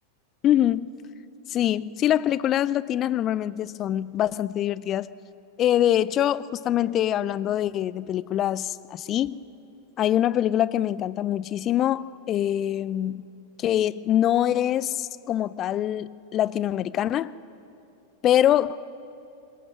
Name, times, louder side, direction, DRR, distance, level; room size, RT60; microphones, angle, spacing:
voice 1, 0.4-0.9 1.5-5.1 5.6-9.4 10.0-13.3 13.6-17.3 18.2-18.8, left 11 dB, 30° left, 19 dB, 0.5 m, -24 dB
24.0 x 21.5 x 6.3 m, 2.7 s
figure-of-eight pair, 90°, 0 cm